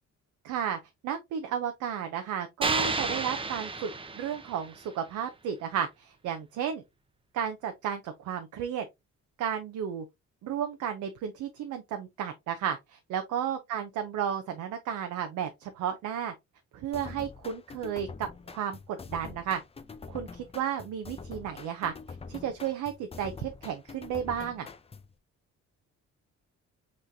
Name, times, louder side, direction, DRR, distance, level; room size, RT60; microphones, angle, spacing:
voice 1, 0.4-6.8 7.3-8.9 9.4-10.1 10.4-16.3 16.7-19.6 20.1-21.9 22.3-24.7, right 8 dB, 80° right, 0.7 m, -33 dB
sound 1, 2.6-4.8, right 3 dB, 20° right, 0.7 m, -31 dB
sound 2, 16.9-25.1, left 4 dB, 20° left, 0.5 m, -45 dB
5.9 x 3.2 x 2.6 m
cardioid pair, 90°, 30 cm